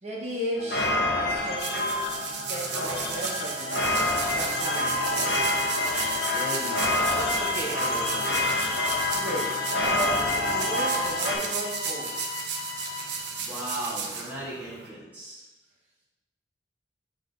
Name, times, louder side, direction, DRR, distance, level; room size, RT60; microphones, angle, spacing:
voice 1, 0.0-3.8 4.3-5.4 9.1-12.2, right 1 dB, 35° right, -3 dB, 1.2 m, -35 dB
sound 1, 0.6-11.4, left 1 dB, 65° left, 1.1 m, -28 dB
sound 2, 1.3-14.9, right 5 dB, 70° right, 0.8 m, -34 dB
sound 3, 2.9-13.7, left 7 dB, 90° left, 1.0 m, -35 dB
voice 2, 5.9-6.8 7.1-8.3 13.4-15.4, right 1 dB, 10° right, -7 dB, 1.0 m, -36 dB
7.4 x 3.4 x 3.8 m, 1.1 s
head